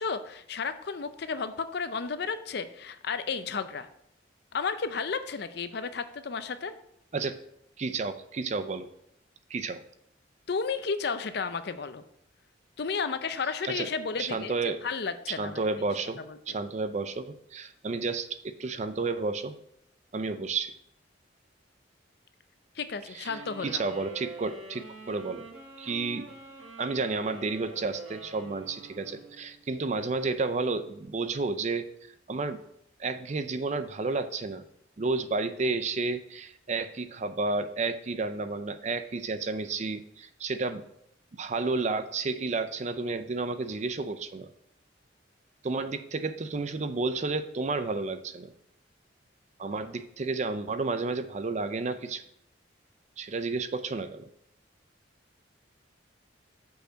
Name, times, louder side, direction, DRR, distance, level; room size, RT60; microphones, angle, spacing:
voice 1, 0.0-3.9 4.5-6.7 10.5-12.0 12.8-14.5 14.8-15.6 16.3-16.6 22.7-23.8, left 5 dB, 60° left, 11 dB, 0.5 m, -33 dB
voice 2, 7.8-8.9 9.5-9.8 13.6-13.9 14.2-14.8 15.4-16.2 16.5-19.6 20.1-20.7 23.1-25.5 25.8-26.3 26.8-31.9 32.3-32.6 33.0-34.6 35.0-40.8 41.3-44.5 45.6-48.5 49.6-52.2 53.2-54.3, right 3 dB, 35° right, 11 dB, 0.4 m, -31 dB
sound 1, 23.2-29.6, right 3 dB, 75° right, 2.0 m, -46 dB
6.5 x 5.4 x 5.0 m, 0.73 s
head